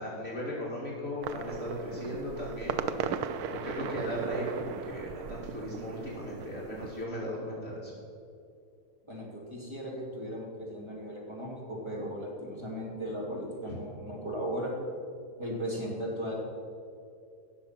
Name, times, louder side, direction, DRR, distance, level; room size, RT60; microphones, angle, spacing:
voice 1, 0.0-2.9 3.5-7.9 13.7-13.8, left 1 dB, 45° left, -5 dB, 2.6 m, -37 dB
sound 1, 1.2-7.1, right 7 dB, 80° right, 1.1 m, -37 dB
voice 2, 9.1-14.7 15.4-16.3, equal, 15° right, -3 dB, 2.8 m, -37 dB
17.0 x 6.7 x 6.0 m, 2.4 s
omnidirectional pair, 1.6 m